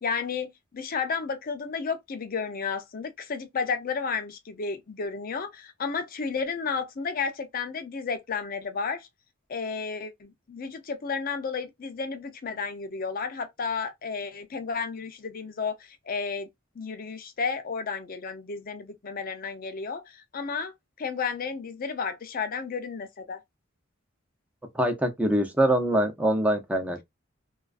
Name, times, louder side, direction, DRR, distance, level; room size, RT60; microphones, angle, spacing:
voice 1, 0.0-9.1 9.5-16.5 16.8-23.4, left 5 dB, 45° left, 0.5 m, -32 dB
voice 2, 24.7-27.0, right 1 dB, 5° right, 0.5 m, -24 dB
2.4 x 2.3 x 2.4 m
head